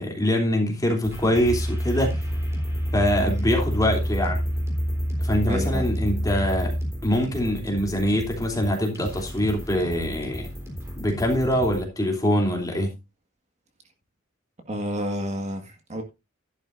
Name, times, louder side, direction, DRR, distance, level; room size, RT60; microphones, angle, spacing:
voice 1, 0.0-2.2 2.9-4.4 5.2-6.8 7.0-10.5 11.0-12.9, equal, 15° left, 3.1 m, -24 dB
sound 1, 1.0-11.8, equal, 15° right, 3.8 m, -37 dB
sound 2, 1.4-6.9, equal, 40° left, 3.1 m, -27 dB
voice 2, 5.4-5.9 14.7-16.0, equal, 35° right, 1.8 m, -30 dB
12.5 x 11.5 x 2.6 m
head